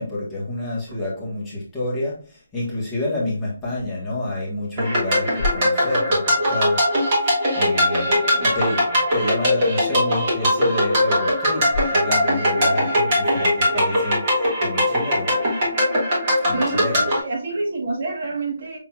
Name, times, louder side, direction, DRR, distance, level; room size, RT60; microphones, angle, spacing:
voice 1, 0.0-6.8 7.2-15.3 16.4-17.0, left 2 dB, 5° left, -8 dB, 1.2 m, -28 dB
sound 1, 4.8-17.2, equal, 25° right, 1.5 m, -20 dB
voice 2, 8.2-8.6 16.4-18.8, right 3 dB, 40° right, 1 dB, 1.1 m, -28 dB
5.8 x 3.6 x 2.3 m, 0.37 s
hypercardioid pair, 175°, 0 cm